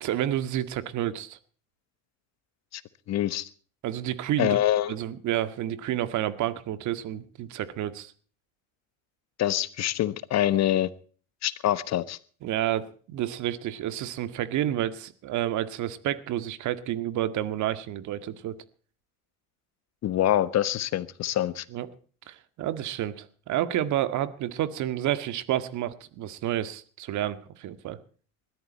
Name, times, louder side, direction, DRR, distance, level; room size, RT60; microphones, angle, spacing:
voice 1, 0.0-1.4 3.8-4.6 4.9-8.1 12.4-18.6 21.7-21.9 22.3-28.0, right 12 dB, 55° right, 12 dB, 1.9 m, -30 dB
voice 2, 3.1-3.5 4.4-4.9 9.4-10.9 11.4-12.2 20.0-21.6, left 12 dB, 50° left, 15 dB, 1.4 m, -25 dB
20.5 x 13.5 x 4.2 m, 0.43 s
supercardioid pair, 85°, 35 cm